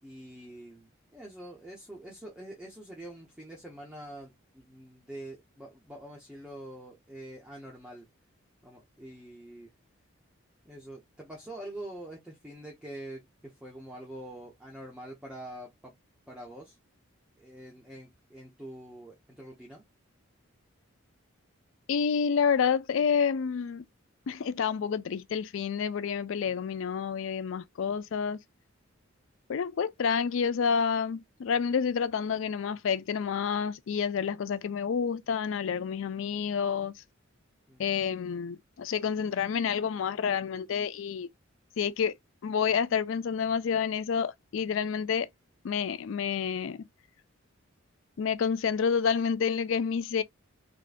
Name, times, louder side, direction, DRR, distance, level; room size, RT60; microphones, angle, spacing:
voice 1, 0.0-8.1 8.6-9.7 10.6-15.9 16.3-16.8 17.4-19.8 26.5-26.7 37.7-37.9, right 1 dB, 5° right, 0.6 m, -45 dB
voice 2, 21.9-23.8 24.3-28.4 29.5-36.9 37.8-41.3 41.8-42.1 42.4-45.3 45.6-46.8 48.2-50.2, left 6 dB, 70° left, 0.3 m, -29 dB
3.6 x 2.4 x 2.5 m
head